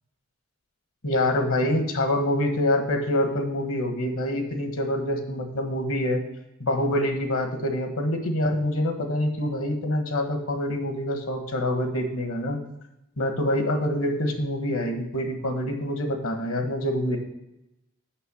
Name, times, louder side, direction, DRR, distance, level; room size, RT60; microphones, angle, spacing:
voice 1, 1.0-6.2 6.6-12.6 13.2-17.2, left 1 dB, 70° left, 5 dB, 1.4 m, -26 dB
6.8 x 6.1 x 6.3 m, 0.90 s
head